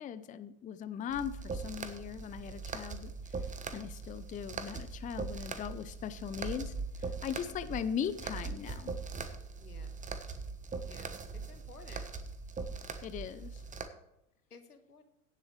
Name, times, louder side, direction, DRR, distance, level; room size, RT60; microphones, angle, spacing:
voice 1, 0.0-3.4 3.7-8.9 13.0-13.6, left 8 dB, 20° left, 13 dB, 0.5 m, -39 dB
sound 1, 1.1-13.9, right 4 dB, 15° right, 1.2 m, -41 dB
voice 2, 9.6-9.9 10.8-12.1 14.5-15.0, left 5 dB, 85° left, 8 dB, 1.5 m, -55 dB
16.5 x 7.6 x 3.3 m, 0.82 s
figure-of-eight pair, 85°, 44 cm